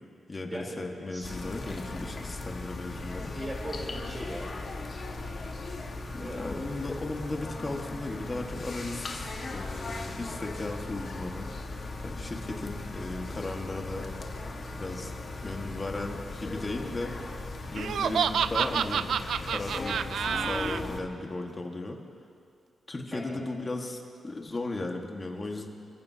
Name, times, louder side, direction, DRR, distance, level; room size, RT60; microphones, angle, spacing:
voice 1, 0.3-3.3 6.1-11.5 12.0-14.0 14.7-15.1 15.4-17.1 17.7-19.0 19.5-22.0 22.9-25.7, left 2 dB, 30° left, 2 dB, 1.7 m, -36 dB
sound 1, 1.2-21.0, left 2 dB, 45° left, 1.6 m, -38 dB
voice 2, 3.3-4.5 6.2-6.4 23.1-23.4, right 1 dB, 20° right, -2 dB, 3.7 m, -39 dB
Laughter, 17.7-20.8, right 8 dB, 80° right, 0.3 m, -28 dB
28.5 x 14.5 x 2.9 m, 2.4 s
cardioid pair, 100°, 0 cm